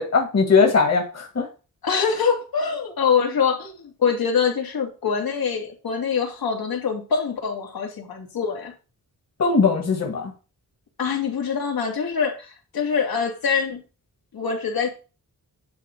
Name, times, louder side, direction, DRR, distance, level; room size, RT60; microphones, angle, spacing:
voice 1, 0.0-1.5 9.4-10.3, left 4 dB, 45° left, 2 dB, 1.8 m, -19 dB
voice 2, 1.8-3.7 4.0-8.7 11.0-13.8 14.3-14.9, left 6 dB, 80° left, 1 dB, 2.6 m, -24 dB
10.5 x 3.9 x 6.6 m, 0.34 s
wide cardioid pair, 155°, 35 cm